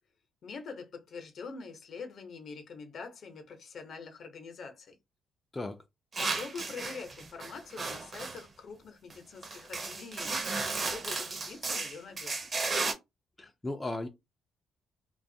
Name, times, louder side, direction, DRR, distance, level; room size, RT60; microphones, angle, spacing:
voice 1, 0.4-4.9 6.2-10.5 10.8-12.7, left 5 dB, 60° left, 0.7 m, -45 dB
voice 2, 5.5-5.8 13.4-14.1, left 2 dB, 20° left, 0.3 m, -36 dB
sound 1, 6.1-8.4 9.1-9.2 9.4-12.9, right 3 dB, 40° right, 0.6 m, -34 dB
2.5 x 2.3 x 2.7 m
cardioid pair, 90°, 0 cm